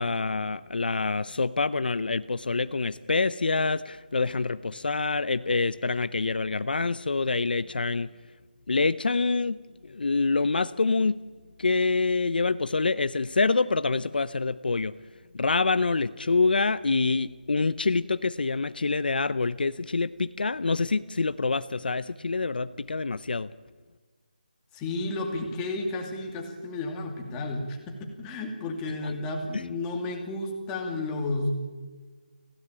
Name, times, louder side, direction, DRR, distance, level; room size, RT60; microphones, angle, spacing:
voice 1, 0.0-8.1 8.7-11.2 11.6-14.9 15.3-23.5, left 3 dB, 70° left, 14 dB, 0.7 m, -26 dB
voice 2, 24.7-31.5, left 2 dB, 10° left, 1 dB, 2.4 m, -32 dB
26.0 x 16.5 x 8.9 m, 1.4 s
figure-of-eight pair, 170°, 5 cm